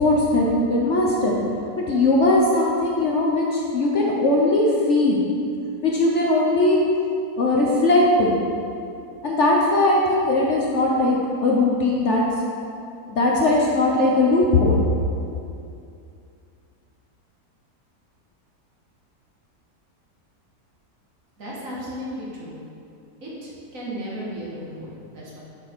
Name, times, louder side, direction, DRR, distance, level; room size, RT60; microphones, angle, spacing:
voice 1, 0.0-1.4 1.8-5.2 5.8-6.8 7.4-8.3 9.2-12.2 13.1-14.8, left 2 dB, 55° left, -3 dB, 1.0 m, -19 dB
voice 2, 21.4-22.6 23.2-25.4, equal, 55° right, -6 dB, 1.9 m, -34 dB
6.6 x 6.1 x 4.5 m, 2.5 s
omnidirectional pair, 1.7 m